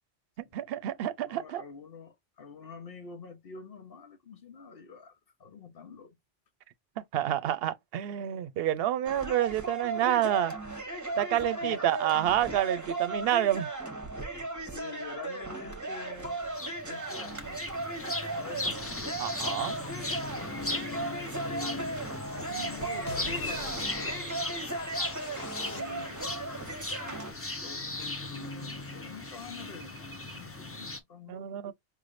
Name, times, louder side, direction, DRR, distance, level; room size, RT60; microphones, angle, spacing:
voice 1, 0.5-1.6 7.0-10.5 11.2-13.7 19.2-19.8 31.3-31.7, right 11 dB, 70° right, 0.8 m, -28 dB
voice 2, 1.2-6.2 11.6-11.8 14.3-16.5 16.8-19.0 20.5-22.0 22.3-24.2 25.7-26.5 27.0-31.7, left 5 dB, 60° left, 1.1 m, -47 dB
sound 1, 9.1-27.3, right 2 dB, 20° right, 0.9 m, -36 dB
sound 2, 16.5-31.0, left 2 dB, 20° left, 0.4 m, -37 dB
sound 3, 23.1-26.3, left 4 dB, 45° left, 0.8 m, -45 dB
5.0 x 3.2 x 2.5 m
omnidirectional pair, 1.1 m